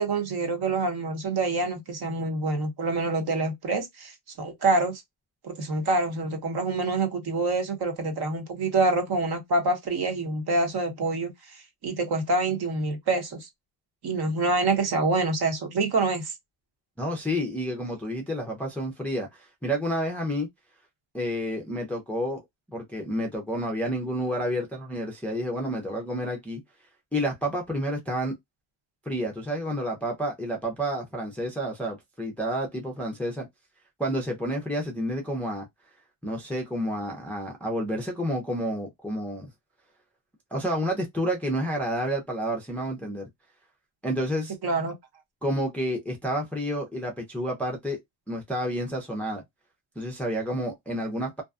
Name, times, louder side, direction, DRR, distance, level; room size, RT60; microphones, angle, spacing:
voice 1, 0.0-5.0 5.4-13.5 14.0-16.3 44.6-44.9, right 3 dB, 50° right, 0.9 m, -26 dB
voice 2, 17.0-20.5 21.1-22.4 22.7-26.6 27.1-28.3 29.1-33.5 34.0-35.7 36.2-39.5 40.5-43.3 44.0-44.5 45.4-48.0 48.3-49.4 50.0-51.4, equal, 5° left, 0.4 m, -30 dB
2.6 x 2.2 x 2.3 m
cardioid pair, 160°, 49 cm